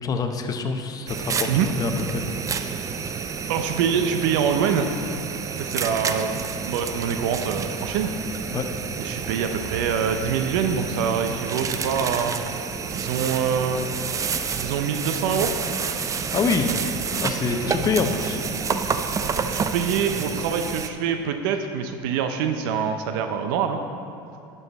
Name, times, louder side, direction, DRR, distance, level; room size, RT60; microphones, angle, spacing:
voice 1, 0.0-1.5 1.8-2.2 8.5-8.6 16.3-16.7 17.2-18.4 19.3-19.7, left 5 dB, 30° left, 6 dB, 0.8 m, -26 dB
sound 1, 1.1-20.9, right 5 dB, 25° right, 0.5 m, -29 dB
voice 2, 3.5-4.9 5.6-8.1 9.0-12.3 12.8-13.9 14.5-15.5 19.5-23.8, right 7 dB, 70° right, 7 dB, 0.6 m, -25 dB
10.5 x 5.6 x 4.1 m, 2.6 s
hypercardioid pair, 85°, 12 cm